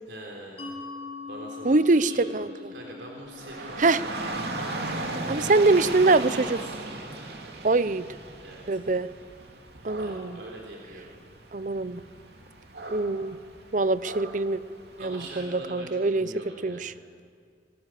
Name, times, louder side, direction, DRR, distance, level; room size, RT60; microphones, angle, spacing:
voice 1, 0.1-0.7 1.3-3.9 4.6-5.8 6.3-7.1 8.4-9.0 10.0-11.1 15.0-17.0, right 2 dB, 85° right, 0 dB, 3.6 m, -43 dB
Mallet percussion, 0.6-6.0, left 4 dB, 35° left, 6.0 m, -43 dB
voice 2, 1.6-2.5 3.8-4.0 5.3-6.6 7.6-8.0 8.7-9.1 9.8-10.4 11.5-12.0 12.9-13.4 13.7-14.6 15.0-16.3 16.6-16.9, right 3 dB, 45° right, 16 dB, 0.7 m, -23 dB
Dog / Rain, 3.3-15.4, right 2 dB, 65° right, 2.7 m, -37 dB
29.0 x 18.0 x 7.6 m, 2.1 s
head